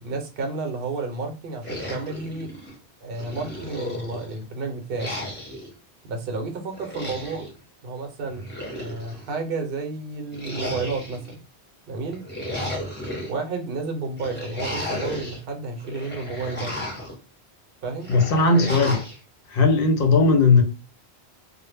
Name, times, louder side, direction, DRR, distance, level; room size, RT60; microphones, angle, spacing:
voice 1, 0.0-2.5 3.0-5.1 6.0-7.5 7.8-8.5 8.8-11.4 11.9-12.2 13.3-16.8 17.8-18.2, right 3 dB, 60° right, 0.8 m, -31 dB
sound 1, 1.6-2.8 3.2-4.4 4.9-5.7 6.7-7.5 8.3-9.3 10.3-11.3 12.1-13.3 14.2-15.4 15.8-17.1 18.0-19.2, left 1 dB, 10° left, 0.6 m, -33 dB
voice 2, 18.1-19.0 19.5-20.6, left 3 dB, 65° left, 0.7 m, -17 dB
2.0 x 2.0 x 3.2 m
omnidirectional pair, 1.1 m